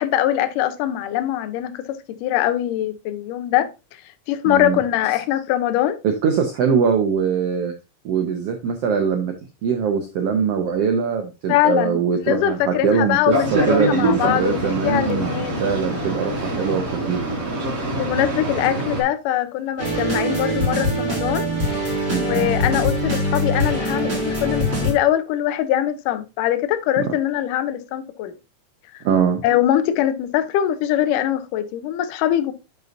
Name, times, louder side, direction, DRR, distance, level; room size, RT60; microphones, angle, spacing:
voice 1, 0.0-3.7 4.3-6.0 11.5-12.0 12.3-15.6 18.0-21.5 22.2-28.4 29.4-32.5, left 12 dB, 80° left, 2.3 m, -22 dB
voice 2, 4.4-4.8 5.1-5.2 6.0-7.7 8.0-9.3 9.6-15.3 15.6-17.2 22.1-22.5 27.0-27.1 29.0-29.4, right 6 dB, 80° right, 1.4 m, -22 dB
Boat Water vehicle, 13.3-19.0, right 1 dB, 45° right, 4.9 m, -24 dB
sound 1, 19.8-24.9, equal, 20° right, 2.8 m, -23 dB
11.0 x 5.4 x 2.6 m
omnidirectional pair, 3.8 m